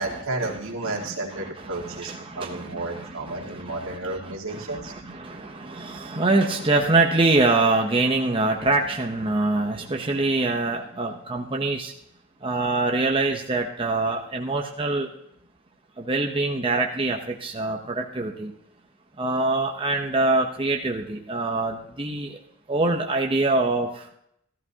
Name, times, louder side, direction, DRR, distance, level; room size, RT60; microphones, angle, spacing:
voice 1, 0.0-4.9, right 2 dB, 80° right, 0 dB, 2.1 m, -32 dB
voice 2, 1.6-4.0 4.2-11.9 12.4-15.1 16.0-18.5 19.2-22.4 22.7-24.1, right 2 dB, 25° right, 1 dB, 0.8 m, -24 dB
14.5 x 13.0 x 2.8 m, 0.75 s
head